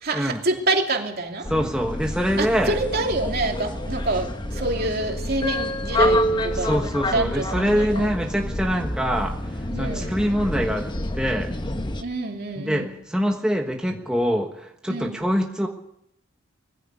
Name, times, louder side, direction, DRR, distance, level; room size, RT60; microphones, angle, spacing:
voice 1, 0.0-1.5 2.4-8.1 9.7-10.1 12.0-12.9 14.9-15.2, right 2 dB, 50° right, 2 dB, 2.9 m, -27 dB
sound 1, 1.4-12.0, left 1 dB, 25° left, 1.2 m, -27 dB
voice 2, 1.5-2.7 6.5-10.9 11.1-11.5 12.6-15.7, equal, 5° right, 1 dB, 1.3 m, -24 dB
20.5 x 15.5 x 8.4 m, 0.82 s
head